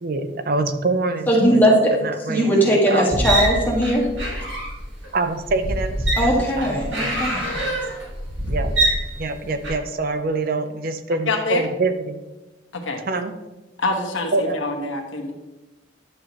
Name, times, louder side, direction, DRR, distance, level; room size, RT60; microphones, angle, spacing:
voice 1, 0.0-1.6 2.0-3.1 5.1-7.2 7.5-7.8 8.5-8.7 9.2-12.2 13.1-13.3 14.3-14.6, right 3 dB, 50° right, 0.6 m, -25 dB
voice 2, 1.3-1.9 2.3-4.1 6.2-7.4, equal, 10° left, 1.8 m, -18 dB
sound 1, 3.1-9.7, right 1 dB, 75° right, 2.2 m, -24 dB
voice 3, 11.3-11.6 12.7-13.0 13.8-15.3, left 3 dB, 85° left, 1.3 m, -25 dB
11.0 x 6.8 x 3.1 m
head